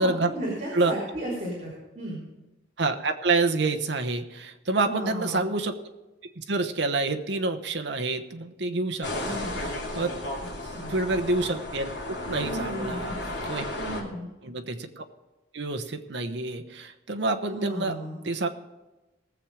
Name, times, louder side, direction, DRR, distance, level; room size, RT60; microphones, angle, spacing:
voice 1, 0.0-1.7 2.0-2.2 4.8-5.5 9.2-9.7 10.6-11.0 12.4-13.2 13.7-14.3 17.5-18.2, right 1 dB, 40° right, -7 dB, 3.6 m, -34 dB
voice 2, 2.8-5.7 6.4-10.1 10.9-11.9 12.2-13.1 13.5-13.6 14.4-15.0 15.5-18.0 18.2-18.5, right 3 dB, 70° right, 6 dB, 1.0 m, -28 dB
sound 1, 9.0-14.0, left 1 dB, 70° left, 2.7 m, -34 dB
19.0 x 7.4 x 4.9 m, 1.1 s
head